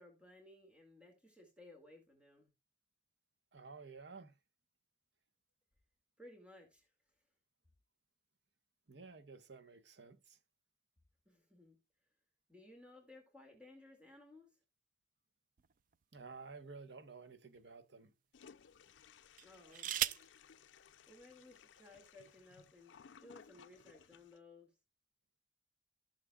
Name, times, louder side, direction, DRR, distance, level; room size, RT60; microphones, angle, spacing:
voice 1, 0.0-2.5 6.2-6.9 11.3-11.8 12.5-14.6 19.4-20.2 21.1-22.9 23.2-24.7, left 2 dB, 5° right, 2.2 m, -59 dB
voice 2, 3.5-4.4 8.9-10.4 16.1-18.1, right 4 dB, 70° right, 1.0 m, -53 dB
sound 1, 15.6-16.8 17.5-17.7 19.3-20.4 21.5-21.6 21.9-22.3, right 12 dB, 45° right, 0.3 m, -40 dB
Toilet flush, 18.3-24.4, left 7 dB, 80° left, 0.5 m, -61 dB
15.0 x 6.5 x 2.3 m
head